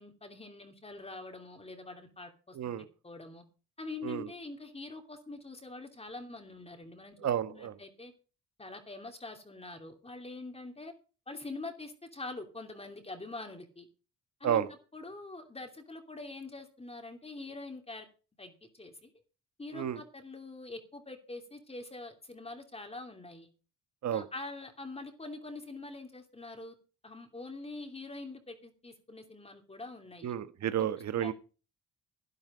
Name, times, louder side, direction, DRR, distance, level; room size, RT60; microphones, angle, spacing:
voice 1, 0.0-2.7 3.0-3.4 3.8-8.1 8.6-10.9 11.3-13.9 14.4-14.7 14.9-18.1 18.4-19.1 19.6-23.5 24.1-26.8 27.0-30.3 30.8-30.9 31.1-31.3, left 3 dB, 20° left, 2.9 m, -44 dB
voice 2, 2.5-2.9 4.0-4.3 7.2-7.7 14.4-14.7 19.7-20.0 24.0-24.2 30.2-31.3, right 10 dB, 65° right, 1.3 m, -31 dB
11.5 x 11.0 x 5.1 m
cardioid pair, 90°, 30 cm